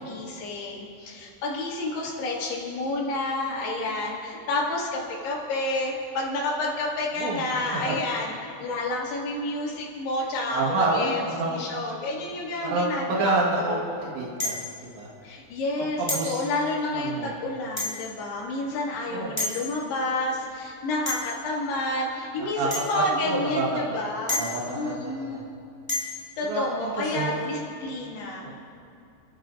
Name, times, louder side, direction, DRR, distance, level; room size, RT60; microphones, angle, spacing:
voice 1, 0.0-11.2 11.5-13.8 15.2-24.4 24.8-25.5 26.4-28.5, left 2 dB, 60° left, -4 dB, 4.1 m, -30 dB
voice 2, 7.2-7.5 7.7-8.0 10.5-11.6 12.7-14.5 15.0-15.1 16.0-16.4 16.9-17.3 18.9-19.4 22.6-22.7 22.9-24.0 24.3-25.4 26.5-27.4 28.4-28.5, right 3 dB, 70° right, -4 dB, 3.7 m, -28 dB
sound 1, 14.4-14.8 16.1-16.3 17.8-18.1 19.4-19.6 21.1-21.4 22.7-22.9 24.3-24.7 25.9-26.2, left 2 dB, 5° left, 2.0 m, -29 dB
27.5 x 14.0 x 2.6 m, 2.5 s
omnidirectional pair, 5.5 m